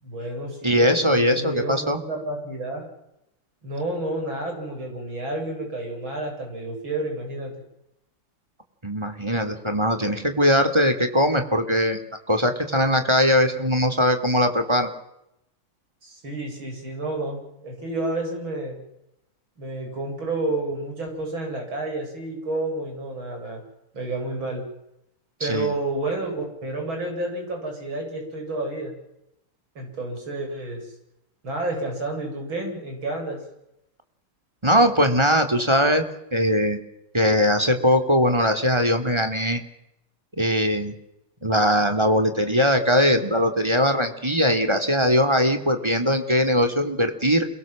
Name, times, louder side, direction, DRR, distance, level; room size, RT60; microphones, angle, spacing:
voice 1, 0.0-2.9 3.6-7.5 16.0-18.8 19.6-23.6 23.9-24.6 25.4-28.9 29.8-30.8 31.4-33.4, right 2 dB, 65° right, 2 dB, 8.9 m, -30 dB
voice 2, 0.6-2.0 8.8-12.0 12.3-14.9 25.4-25.7 34.6-36.0 36.3-36.8 37.1-39.6 40.4-40.9 41.4-47.5, equal, 10° right, 6 dB, 3.2 m, -20 dB
29.5 x 23.0 x 7.7 m, 0.81 s
omnidirectional pair, 2.3 m